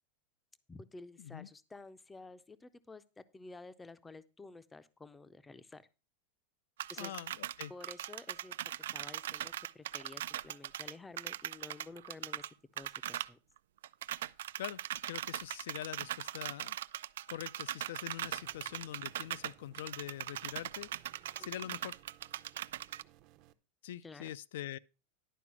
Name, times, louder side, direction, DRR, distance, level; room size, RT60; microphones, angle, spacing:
voice 1, 0.7-5.9 6.9-7.1 7.7-8.6 8.9-13.4 21.4-21.7 24.0-24.3, left 3 dB, 10° left, 0.5 m, -52 dB
sound 1, 6.8-12.5 12.8-13.3 13.6-13.7 13.8-23.0, right 12 dB, 85° right, 0.4 m, -40 dB
voice 2, 7.0-7.7 14.6-14.8 15.0-16.8 17.3-20.9 21.4-22.0 23.8-24.8, left 12 dB, 70° left, 0.4 m, -44 dB
sound 2, 18.2-23.5, right 13 dB, 40° right, 0.6 m, -62 dB
11.0 x 4.9 x 6.0 m
supercardioid pair, 160°, 0 cm